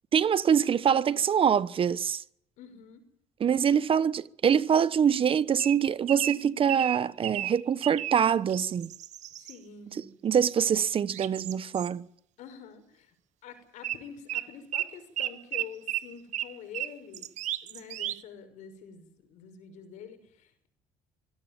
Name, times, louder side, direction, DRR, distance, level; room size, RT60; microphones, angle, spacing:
voice 1, 0.1-2.2 3.4-8.9 10.2-12.0, right 8 dB, 45° right, 1.1 m, -24 dB
voice 2, 2.6-3.0 9.4-10.1 12.4-13.1 13.4-17.3 17.6-20.7, left 7 dB, 75° left, 6.0 m, -47 dB
sound 1, 5.6-8.2 8.5-9.5 11.1-11.9 13.8-14.0 14.3-18.2, right 13 dB, 70° right, 1.1 m, -34 dB
25.0 x 16.5 x 9.2 m
supercardioid pair, 80°, 13 cm